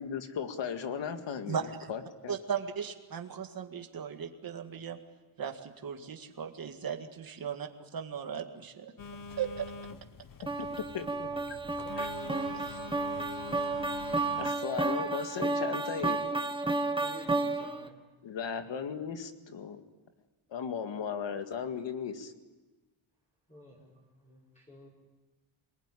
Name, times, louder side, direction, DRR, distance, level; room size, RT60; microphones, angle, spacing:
voice 1, 0.0-1.6 1.9-2.4 10.6-10.7 10.9-11.3 12.0-12.1 14.4-16.2 18.2-19.8 20.5-22.3, left 7 dB, 60° left, 7 dB, 2.1 m, -36 dB
voice 2, 1.5-1.9 2.3-5.0 5.4-8.9 9.4-9.7 12.5-12.8, right 7 dB, 45° right, 5 dB, 2.1 m, -37 dB
Telephone, 9.0-14.5, left 4 dB, 40° left, 1.2 m, -46 dB
sound 1, 10.5-17.9, right 3 dB, 10° right, 1.0 m, -32 dB
voice 3, 17.0-18.0 23.5-24.9, equal, 15° left, -6 dB, 5.7 m, -53 dB
27.0 x 20.0 x 10.0 m, 1.2 s
wide cardioid pair, 170°, 50 cm